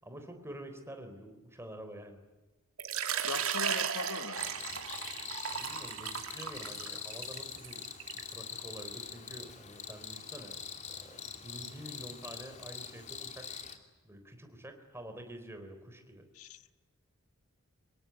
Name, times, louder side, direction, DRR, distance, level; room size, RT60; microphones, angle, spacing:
voice 1, 0.0-2.2 5.5-7.8 8.1-10.6 10.9-13.5 14.0-16.3, right 1 dB, 10° right, 6 dB, 4.0 m, -48 dB
Water / Liquid, 2.8-8.3, right 8 dB, 65° right, 2.6 m, -36 dB
voice 2, 3.2-4.9 16.3-16.6, left 4 dB, 75° left, 12 dB, 1.3 m, -41 dB
Cricket, 4.4-13.8, left 6 dB, 30° left, 2.7 m, -44 dB
25.5 x 22.0 x 9.6 m, 1.2 s
head